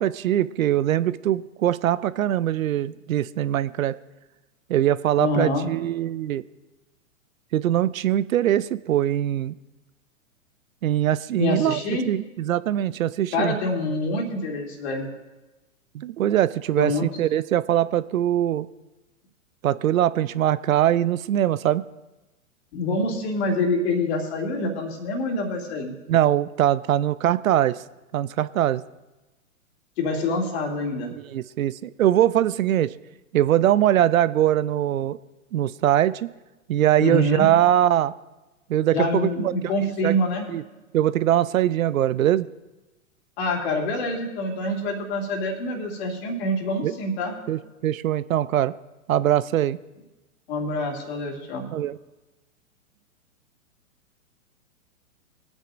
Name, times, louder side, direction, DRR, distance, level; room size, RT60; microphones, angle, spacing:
voice 1, 0.0-4.0 4.7-6.4 7.5-9.6 10.8-11.8 12.0-13.6 15.9-18.7 19.6-21.8 26.1-27.8 28.1-28.8 31.1-32.9 33.3-35.2 35.5-36.3 36.7-38.1 38.7-39.5 40.0-40.2 40.5-40.6 40.9-42.5 46.8-46.9 47.5-48.7 49.1-49.8 51.7-52.0, right 12 dB, 75° right, 17 dB, 0.5 m, -22 dB
voice 2, 5.2-5.7 11.4-12.1 13.3-15.1 16.8-17.1 22.7-25.9 30.0-31.1 37.0-37.5 38.9-40.5 43.4-47.3 50.5-51.7, left 2 dB, 50° left, 1 dB, 2.6 m, -26 dB
22.0 x 9.1 x 2.5 m, 1.1 s
hypercardioid pair, 120°, 41 cm